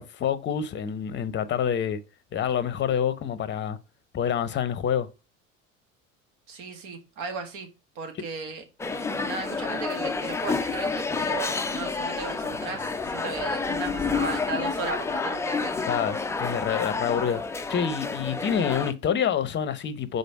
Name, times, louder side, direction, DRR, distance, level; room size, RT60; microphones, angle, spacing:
voice 1, 0.0-2.0 2.3-3.8 4.1-5.1 15.9-17.4 17.7-20.2, left 8 dB, 30° left, 0.8 m, -27 dB
voice 2, 6.5-7.7 8.0-8.6 9.2-15.9, right 4 dB, 60° right, 1.9 m, -36 dB
sound 1, 8.8-18.9, left 4 dB, 5° left, 0.4 m, -29 dB
5.1 x 4.0 x 5.9 m
figure-of-eight pair, 70°, 40 cm